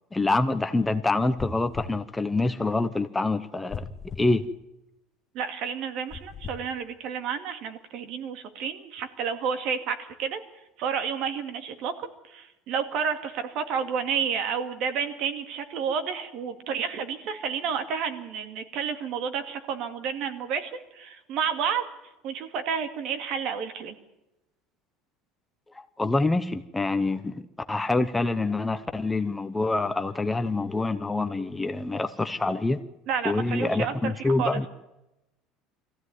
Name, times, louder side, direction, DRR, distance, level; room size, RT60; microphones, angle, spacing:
voice 1, 0.1-3.9 4.2-4.5 25.7-27.4 27.7-32.8 33.2-34.7, left 2 dB, 10° left, 10 dB, 0.8 m, -26 dB
sound 1, 1.4-2.0 3.7-4.3 6.1-6.6, left 5 dB, 25° left, 1.7 m, -36 dB
voice 2, 5.3-10.4 10.8-11.9 12.3-21.9 22.2-23.9 33.1-34.1 34.4-34.6, right 7 dB, 55° right, 8 dB, 2.3 m, -30 dB
22.5 x 15.5 x 9.5 m, 0.95 s
cardioid pair, 140°, 0 cm